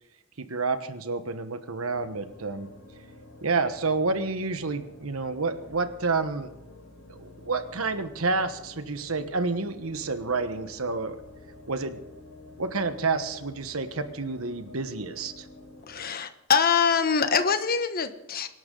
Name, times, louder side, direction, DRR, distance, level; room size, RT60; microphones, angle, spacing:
voice 1, 0.5-2.7 3.4-6.5 7.1-11.2 11.7-12.0 12.6-15.5, right 3 dB, 75° right, 10 dB, 1.2 m, -29 dB
sound 1, 1.8-16.1, left 2 dB, 65° left, 6.8 m, -49 dB
voice 2, 15.9-18.5, left 6 dB, 45° left, 9 dB, 1.2 m, -24 dB
25.0 x 12.0 x 3.9 m, 0.94 s
head